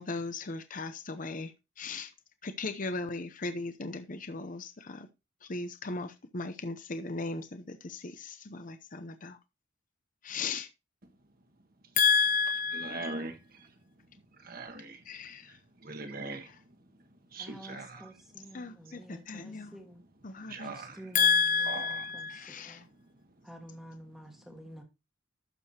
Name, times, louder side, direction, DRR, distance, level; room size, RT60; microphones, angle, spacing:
voice 1, 0.0-1.5 1.8-2.1 2.4-5.1 5.5-9.4 10.2-10.7 12.0-13.3 15.1-15.5 16.5-16.6 18.5-19.8 20.2-20.8 21.1-22.8, left 5 dB, 45° left, 0.8 m, -32 dB
voice 2, 12.8-13.3 14.4-15.0 15.8-16.5 17.3-18.1 20.5-21.0 21.7-21.8, right 3 dB, 50° right, 1.6 m, -40 dB
voice 3, 17.4-20.0 20.7-21.2 21.9-22.3 22.6-22.8 23.4-24.8, right 1 dB, ahead, 1.5 m, -49 dB
12.0 x 6.9 x 2.8 m
head